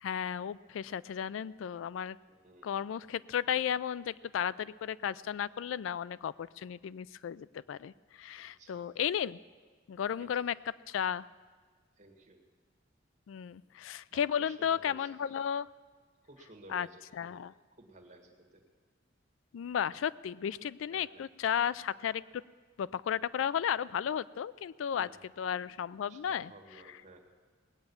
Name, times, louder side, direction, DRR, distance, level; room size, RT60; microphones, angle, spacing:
voice 1, 0.0-2.2 2.6-9.4 9.9-10.5 10.9-11.3 13.3-15.7 16.7-16.9 17.1-17.5 19.5-22.2 22.8-25.1 25.4-26.5, left 8 dB, 90° left, 19 dB, 0.3 m, -34 dB
voice 2, 2.3-2.8 8.3-9.0 10.2-10.4 12.0-12.4 13.8-15.1 16.2-17.4 17.8-18.6 20.9-21.2 25.0-25.1 26.1-27.3, right 1 dB, 40° right, 1 dB, 1.9 m, -56 dB
19.0 x 8.9 x 7.1 m, 1.5 s
head